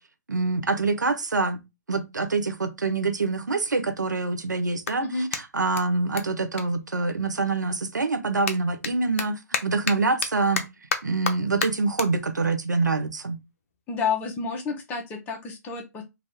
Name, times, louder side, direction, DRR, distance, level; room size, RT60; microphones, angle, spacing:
voice 1, 0.3-1.6 1.9-10.6 11.0-13.4, right 3 dB, 85° right, 0.7 m, -25 dB
Clapping, 2.7-2.8 3.5-7.6 7.9-14.5, left 6 dB, 50° left, 0.7 m, -35 dB
voice 2, 13.9-16.0, left 5 dB, 15° left, 0.8 m, -29 dB
3.5 x 2.5 x 3.5 m
figure-of-eight pair, 135°, 9 cm